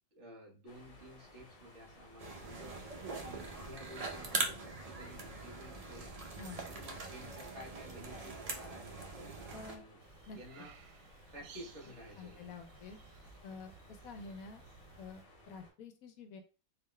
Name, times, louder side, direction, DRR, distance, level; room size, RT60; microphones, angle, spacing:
voice 1, 0.1-6.2 6.6-10.0 10.3-10.7 11.3-12.5 14.1-14.3, equal, 50° right, -1 dB, 1.5 m, -53 dB
sound 1, 0.7-15.7, left 1 dB, 45° left, 1.0 m, -59 dB
sound 2, 2.2-9.8, right 3 dB, 70° right, 0.3 m, -42 dB
voice 2, 9.5-9.8 10.3-10.4 12.2-13.0 13.4-14.6 15.0-16.4, left 4 dB, 75° left, 7 dB, 1.0 m, -49 dB
sound 3, 10.0-15.2, right 5 dB, 85° right, 1.1 m, -58 dB
3.6 x 2.6 x 3.2 m, 0.33 s
omnidirectional pair, 1.5 m